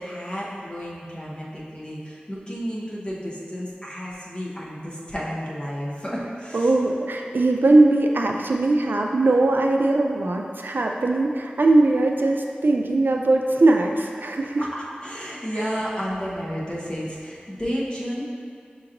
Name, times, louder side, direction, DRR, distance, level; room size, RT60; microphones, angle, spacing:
voice 1, 0.0-6.7 14.6-18.2, equal, 30° left, -6 dB, 1.0 m, -32 dB
voice 2, 6.5-14.7 15.6-15.7, right 2 dB, 75° right, 2 dB, 0.3 m, -20 dB
6.4 x 2.9 x 2.5 m, 2.3 s
wide cardioid pair, 40°, 3 cm